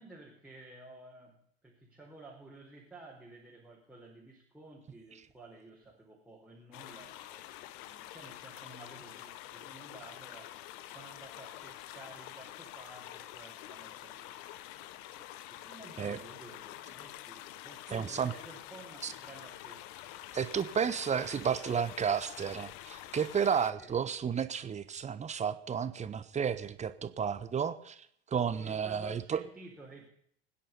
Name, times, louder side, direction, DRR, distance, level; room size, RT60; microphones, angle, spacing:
voice 1, 0.0-10.5 10.8-14.5 15.5-19.9 23.8-23.9 28.5-30.1, right 2 dB, 5° right, -3 dB, 4.4 m, -53 dB
sound 1, 6.7-23.7, left 14 dB, 55° left, 1.1 m, -47 dB
voice 2, 17.9-18.3 19.0-19.1 20.3-28.0 28.3-29.4, right 7 dB, 20° right, 12 dB, 1.3 m, -32 dB
24.0 x 10.0 x 5.4 m, 0.67 s
hypercardioid pair, 85°, 32 cm